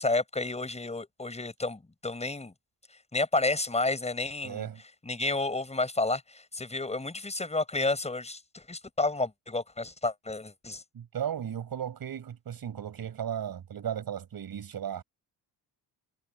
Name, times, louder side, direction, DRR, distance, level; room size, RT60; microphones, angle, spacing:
voice 1, 0.0-2.5 3.1-4.7 5.0-10.8, left 2 dB, 15° left, 6.5 m, -31 dB
voice 2, 4.4-4.8 10.9-15.0, right 9 dB, 55° right, 6.8 m, -35 dB
cardioid pair, 140°, 43 cm